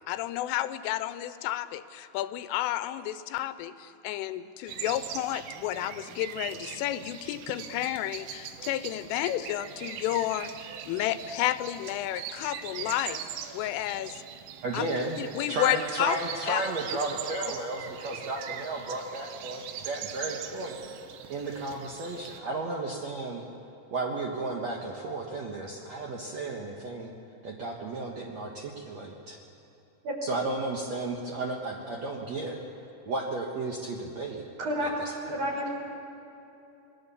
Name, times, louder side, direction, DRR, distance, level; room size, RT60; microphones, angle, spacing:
voice 1, 0.1-10.5 10.9-13.2 13.5-14.2 14.7-14.9 15.2-16.2 16.5-16.6, left 13 dB, 85° left, 13 dB, 3.3 m, -31 dB
sound 1, 4.7-22.4, right 9 dB, 90° right, 3.8 m, -41 dB
voice 2, 14.6-15.2 15.5-20.8 21.3-23.4 23.9-27.1 27.4-29.4 30.2-32.6 33.1-34.4 34.8-35.4, right 2 dB, 70° right, -1 dB, 1.6 m, -33 dB
voice 3, 34.6-34.9 35.3-35.7, equal, 40° right, -1 dB, 6.2 m, -30 dB
28.0 x 21.0 x 7.1 m, 2.9 s
omnidirectional pair, 5.6 m